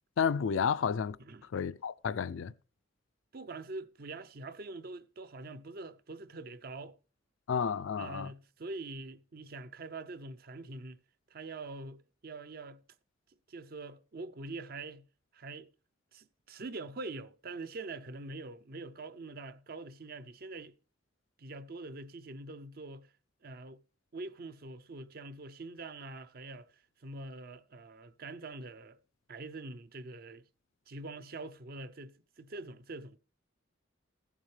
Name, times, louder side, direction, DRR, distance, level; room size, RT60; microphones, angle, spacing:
voice 1, 0.2-1.2 1.5-2.5 7.5-8.3, left 6 dB, 85° left, 0.4 m, -31 dB
voice 2, 3.3-7.0 8.0-11.0 11.3-12.8 13.5-15.0 15.3-15.7 16.1-20.7 21.4-23.1 23.4-23.8 24.1-29.0 29.3-30.4 30.9-33.2, right 2 dB, 50° right, 0.6 m, -44 dB
16.0 x 7.4 x 3.3 m
head